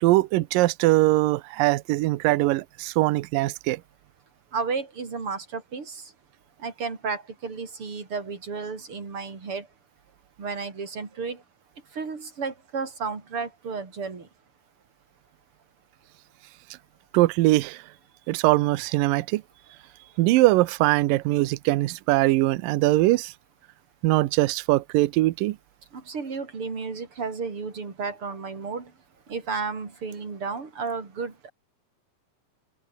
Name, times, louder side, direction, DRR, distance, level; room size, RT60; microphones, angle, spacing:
voice 1, 0.0-3.8 17.1-17.8 18.3-19.4 20.2-23.3 24.0-25.6, right 18 dB, 80° right, 2.4 m, -21 dB
voice 2, 4.5-6.1 6.6-9.7 10.4-11.4 11.9-14.3 25.9-28.9 29.3-31.5, right 5 dB, 35° right, 4.7 m, -33 dB
omnidirectional pair, 4.1 m